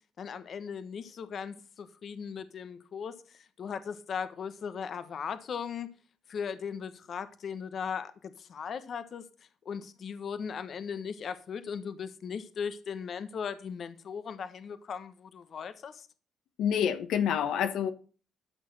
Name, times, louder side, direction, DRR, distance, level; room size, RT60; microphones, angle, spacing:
voice 1, 0.2-5.9 6.3-9.2 9.6-16.1, left 6 dB, 55° left, 1.3 m, -38 dB
voice 2, 16.6-17.9, left 8 dB, 80° left, 1.3 m, -27 dB
13.0 x 6.5 x 6.5 m
cardioid pair, 90°, 0 cm